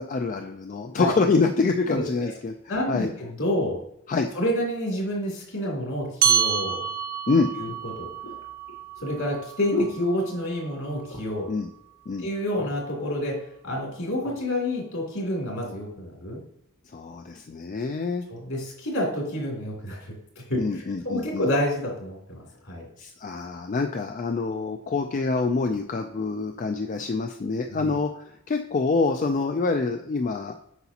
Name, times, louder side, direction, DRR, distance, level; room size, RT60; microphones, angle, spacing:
voice 1, 0.0-2.5 2.9-3.1 4.1-4.3 7.3-7.5 11.5-11.7 12.1-12.3 16.9-18.3 20.6-21.5 23.0-30.6, left 4 dB, 35° left, 5 dB, 0.4 m, -26 dB
voice 2, 1.9-2.3 2.7-3.8 4.3-6.8 7.6-8.1 9.0-11.5 12.2-16.4 18.3-20.1 20.5-22.9 27.7-28.0, left 1 dB, 70° left, -2 dB, 2.9 m, -29 dB
sound 1, 6.2-11.0, right 8 dB, 45° right, 0.6 m, -28 dB
sound 2, 6.7-6.8 7.6-10.7 11.0-11.5 11.9-12.0 12.3-13.0 13.6-14.4 15.0-15.2, left 1 dB, 85° left, 1.3 m, -35 dB
8.0 x 5.8 x 2.8 m, 0.75 s
head